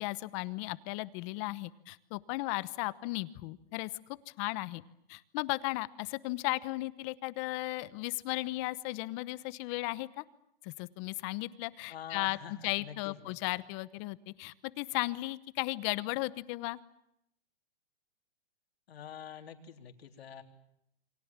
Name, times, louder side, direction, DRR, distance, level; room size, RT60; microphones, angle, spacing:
voice 1, 0.0-4.8 5.1-10.2 10.6-12.4 12.6-16.8, left 20 dB, 30° left, 16 dB, 1.0 m, -36 dB
voice 2, 11.9-13.4 18.9-20.4, left 8 dB, 75° left, 5 dB, 3.9 m, -46 dB
29.0 x 24.0 x 7.4 m, 0.78 s
hypercardioid pair, 150°, 31 cm